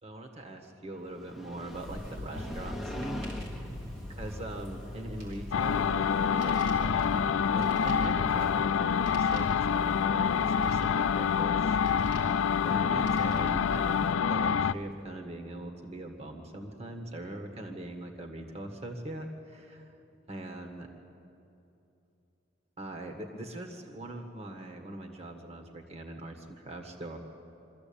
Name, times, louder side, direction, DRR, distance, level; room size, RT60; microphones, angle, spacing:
voice 1, 0.0-3.7 4.2-19.9 20.3-20.9 22.8-27.2, right 1 dB, 35° right, 2 dB, 1.8 m, -41 dB
Motorcycle, 1.1-7.0, equal, ahead, 1.2 m, -43 dB
sound 1, 1.7-14.1, left 1 dB, 75° right, 4.7 m, -42 dB
sound 2, 5.5-14.7, left 7 dB, 85° left, 0.4 m, -27 dB
24.5 x 14.0 x 8.7 m, 2.8 s
head